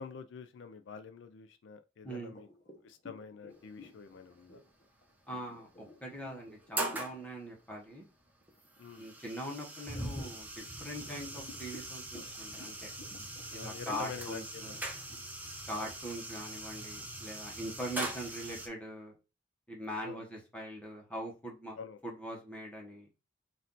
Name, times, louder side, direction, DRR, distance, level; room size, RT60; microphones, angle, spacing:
voice 1, 0.0-2.5 2.8-4.6 8.8-9.1 13.5-14.8 15.7-15.9 20.0-20.2 21.8-22.0, left 6 dB, 65° left, 0.4 m, -46 dB
sound 1, 2.2-7.3 7.7-8.0 8.4-9.2 9.8-16.5, left 3 dB, 35° left, 0.9 m, -54 dB
sound 2, 3.7-4.0 5.2-5.3 5.7-5.8 6.4-7.2 8.3-18.7, right 1 dB, 10° right, 0.7 m, -41 dB
voice 2, 5.3-8.1 9.0-12.9 13.5-14.8 15.7-19.1 19.7-23.1, right 1 dB, 5° left, 1.2 m, -42 dB
4.2 x 2.6 x 3.8 m
head